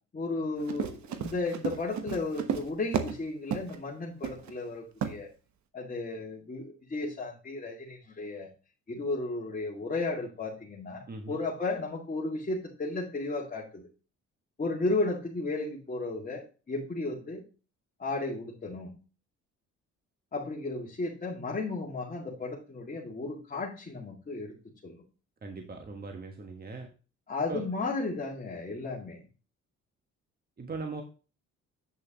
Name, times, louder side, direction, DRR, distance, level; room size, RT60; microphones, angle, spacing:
voice 1, 0.1-5.3 5.7-8.5 8.9-13.9 14.6-17.4 18.0-18.9 20.3-24.5 24.8-25.0 27.3-29.3, left 3 dB, 30° left, -4 dB, 2.3 m, -34 dB
Run, 0.6-3.2 3.5-3.8 4.2-4.5 5.0-5.2, right 8 dB, 70° right, 1.2 m, -33 dB
voice 2, 11.1-11.4 25.4-26.9 27.5-27.6 30.6-31.0, right 3 dB, 30° right, 4 dB, 1.4 m, -39 dB
8.6 x 6.7 x 3.0 m, 0.35 s
cardioid pair, 90°, 30 cm